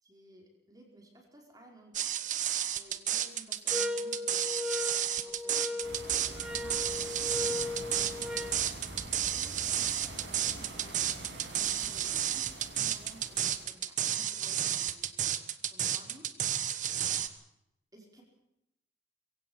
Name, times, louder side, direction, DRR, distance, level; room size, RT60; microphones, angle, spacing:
voice 1, 0.0-2.1 2.7-9.6 10.4-16.4 17.9-18.2, right 1 dB, 20° right, 0 dB, 5.1 m, -56 dB
sound 1, 1.9-17.3, right 10 dB, 45° right, 1.3 m, -31 dB
sound 2, 3.7-8.6, left 2 dB, 5° right, 1.1 m, -37 dB
sound 3, 5.8-13.6, right 1 dB, 80° right, 6.8 m, -45 dB
23.0 x 17.0 x 7.3 m, 0.82 s
head